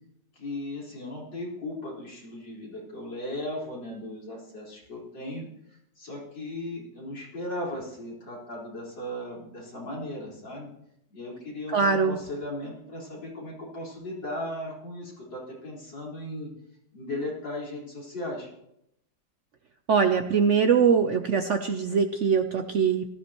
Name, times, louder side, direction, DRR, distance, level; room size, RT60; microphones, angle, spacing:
voice 1, 0.3-10.7 11.1-16.5 16.9-18.5, left 1 dB, 90° left, -4 dB, 5.1 m, -37 dB
voice 2, 11.7-12.2 19.9-23.1, right 6 dB, 65° right, 7 dB, 0.7 m, -22 dB
18.5 x 14.0 x 3.0 m, 0.79 s
omnidirectional pair, 1.9 m